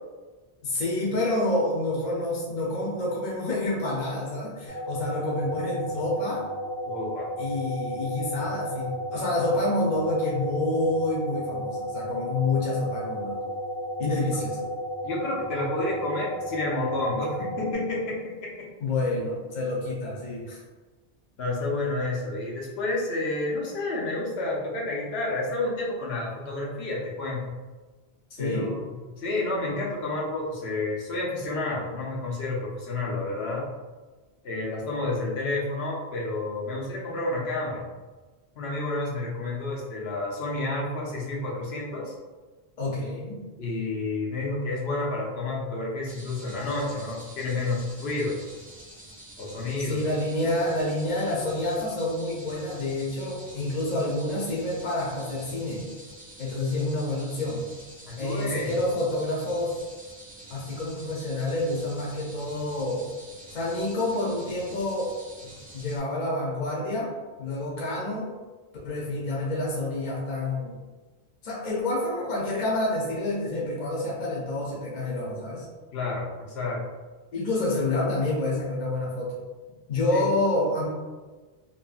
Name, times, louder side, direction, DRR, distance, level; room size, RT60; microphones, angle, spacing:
voice 1, 0.6-6.4 7.4-13.4 14.0-14.6 18.8-20.6 28.4-28.8 42.8-43.4 49.8-55.8 56.4-57.6 58.2-59.8 60.5-63.0 63.5-65.1 65.4-67.1 67.4-68.3 68.8-70.8 71.4-75.7 77.3-79.3 79.9-80.9, left 2 dB, 50° left, -5 dB, 0.7 m, -28 dB
sound 1, 4.7-17.7, equal, 65° right, 0.7 m, -33 dB
voice 2, 6.8-7.3 14.2-14.4 15.0-18.7 21.4-27.5 28.4-33.7 34.4-37.8 38.6-42.1 43.6-48.4 49.4-50.0 58.1-58.7 75.9-76.8 80.1-80.2, left 2 dB, 90° left, -4 dB, 0.9 m, -30 dB
sound 2, 46.1-66.0, right 1 dB, 15° right, 0.3 m, -47 dB
2.8 x 2.2 x 2.3 m, 1.3 s
omnidirectional pair, 1.0 m